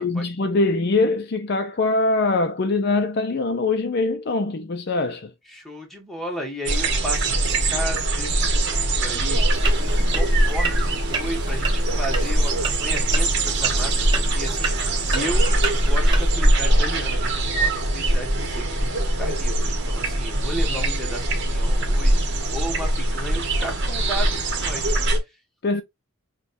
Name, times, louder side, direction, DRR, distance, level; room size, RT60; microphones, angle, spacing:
voice 1, 0.0-5.3 20.7-21.0 25.6-25.8, left 3 dB, 45° left, 0.5 m, -23 dB
voice 2, 5.5-14.1 14.3-15.5 15.8-25.0, equal, ahead, 1.2 m, -34 dB
sound 1, 6.7-25.2, right 1 dB, 50° right, 1.2 m, -22 dB
sound 2, 9.5-16.3, right 4 dB, 20° right, 0.7 m, -32 dB
6.1 x 2.3 x 2.5 m
head